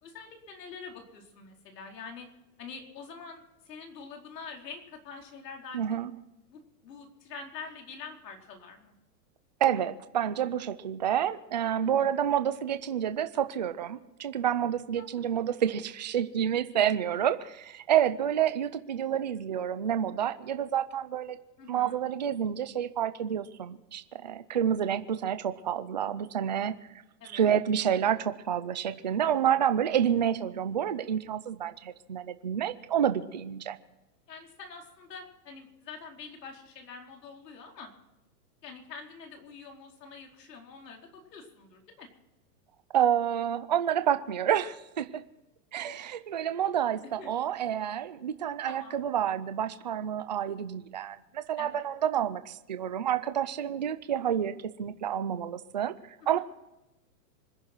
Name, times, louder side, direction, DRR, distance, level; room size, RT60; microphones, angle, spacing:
voice 1, 0.0-2.3 2.6-6.0 6.5-8.9 11.8-12.1 15.0-15.1 21.6-22.0 27.2-27.4 34.3-37.9 38.6-42.1 47.2-47.3 48.7-49.0 51.6-51.8 56.2-56.4, left 5 dB, 80° left, 1 dB, 4.6 m, -45 dB
voice 2, 5.7-6.1 9.6-21.4 21.7-26.7 27.3-33.8 42.9-45.2 45.7-55.9 56.3-56.4, right 9 dB, 30° right, 11 dB, 0.4 m, -29 dB
26.0 x 10.5 x 4.5 m, 0.97 s
supercardioid pair, 175°, 48 cm